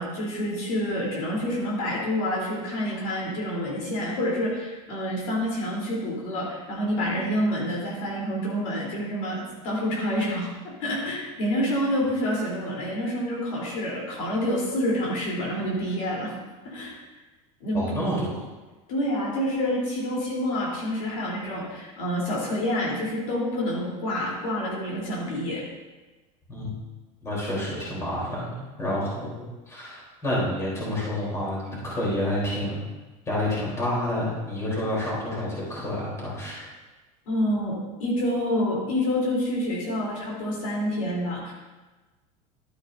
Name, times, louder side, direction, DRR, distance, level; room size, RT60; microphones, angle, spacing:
voice 1, 0.0-10.5 10.8-16.3 16.6-17.0 17.6-17.9 18.9-25.6 37.3-41.5, equal, 70° left, -4 dB, 3.6 m, -28 dB
voice 2, 17.7-18.4 26.5-26.7 27.2-32.8 33.3-36.7, left 1 dB, 15° left, -6 dB, 3.6 m, -29 dB
12.0 x 9.9 x 2.7 m, 1.2 s
supercardioid pair, 145°, 18 cm